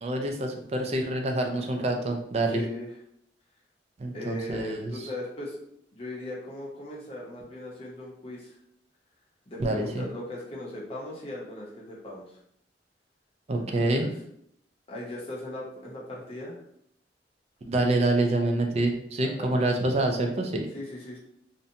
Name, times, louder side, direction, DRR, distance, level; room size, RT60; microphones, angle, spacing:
voice 1, 0.0-2.6 4.0-4.9 9.6-10.0 13.5-14.1 17.7-20.7, right 2 dB, 35° right, 3 dB, 0.4 m, -26 dB
voice 2, 2.5-2.9 4.1-5.6 5.9-8.6 9.5-12.4 13.5-14.1 14.9-16.6 19.2-19.5 20.7-21.2, left 1 dB, 35° left, -4 dB, 0.7 m, -38 dB
2.6 x 2.1 x 2.7 m, 0.70 s
head